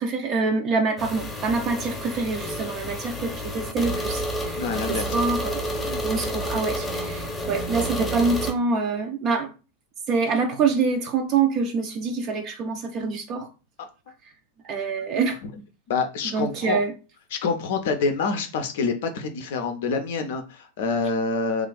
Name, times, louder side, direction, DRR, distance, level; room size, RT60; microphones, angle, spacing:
voice 1, 0.0-5.6 6.0-9.5 10.1-13.5 14.6-15.4 16.3-16.9, right 4 dB, 35° right, 0.4 m, -25 dB
sound 1, 1.0-8.5, equal, 10° left, 0.7 m, -30 dB
voice 2, 4.6-5.1 5.8-6.0 13.8-13.9 15.9-16.8 17.3-21.7, left 4 dB, 55° left, 0.5 m, -26 dB
3.0 x 2.4 x 3.7 m
figure-of-eight pair, 90°, 0 cm